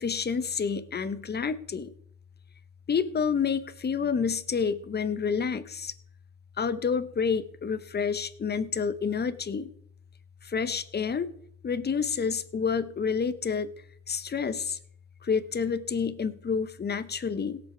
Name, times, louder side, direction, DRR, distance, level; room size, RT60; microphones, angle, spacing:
voice 1, 0.0-1.9 2.9-5.9 6.6-9.7 10.4-11.3 11.6-13.7 14.1-14.8 15.2-17.6, left 6 dB, 35° left, 13 dB, 1.0 m, -29 dB
17.0 x 7.9 x 4.6 m, 0.65 s
cardioid pair, 90°, 30 cm